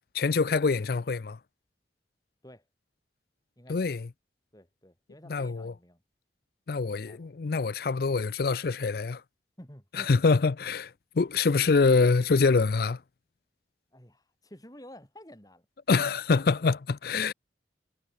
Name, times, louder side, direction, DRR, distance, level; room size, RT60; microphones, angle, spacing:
voice 1, 0.1-1.4 3.7-4.1 5.3-5.7 6.7-9.2 9.9-13.0 15.9-17.3, left 4 dB, 55° left, 0.5 m, -25 dB
voice 2, 3.6-3.9 4.5-6.0 6.7-7.3 9.6-10.2 13.9-15.6, left 1 dB, 20° left, 4.7 m, -51 dB
head